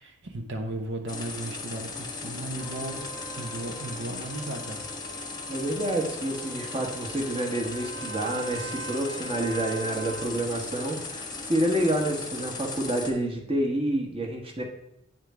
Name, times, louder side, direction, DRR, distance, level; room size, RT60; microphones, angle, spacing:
voice 1, 0.0-3.1 3.4-4.8, right 1 dB, 60° right, 4 dB, 0.9 m, -35 dB
sound 1, 1.1-13.1, left 4 dB, 20° left, 1.0 m, -37 dB
Trumpet, 2.6-10.4, right 4 dB, 90° right, 1.6 m, -43 dB
voice 2, 5.5-14.6, right 1 dB, 25° right, 1 dB, 1.2 m, -28 dB
9.1 x 3.7 x 4.7 m, 0.82 s
head